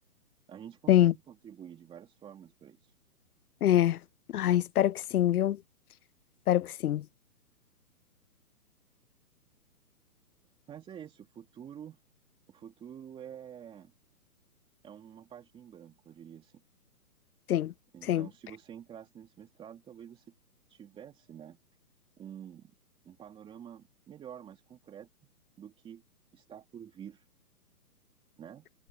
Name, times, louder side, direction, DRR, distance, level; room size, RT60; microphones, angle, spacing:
voice 1, 0.5-2.9 10.7-12.0 12.5-13.9 14.8-16.6 17.9-20.3 20.7-21.6 22.2-22.7 23.0-25.1 25.6-26.0 26.3-27.3 28.4-28.7, right 9 dB, 10° right, 2.8 m, -48 dB
voice 2, 3.6-4.0 4.3-5.6 6.5-7.0 17.5-17.7 18.1-18.2, left 12 dB, 75° left, 0.6 m, -24 dB
hypercardioid pair, 155°, 46 cm